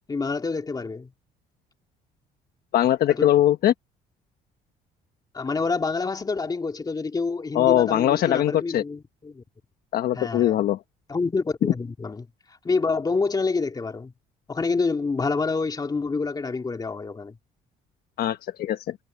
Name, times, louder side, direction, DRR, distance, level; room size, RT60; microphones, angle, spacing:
voice 1, 0.1-1.1 3.1-3.3 5.3-9.4 10.1-10.6 11.1-12.3 12.6-14.1 14.5-17.4, left 4 dB, 25° left, 2.6 m, -27 dB
voice 2, 2.7-3.7 7.5-8.8 9.9-10.8 18.2-19.0, left 12 dB, 65° left, 1.2 m, -21 dB
cardioid pair, 110°, 17 cm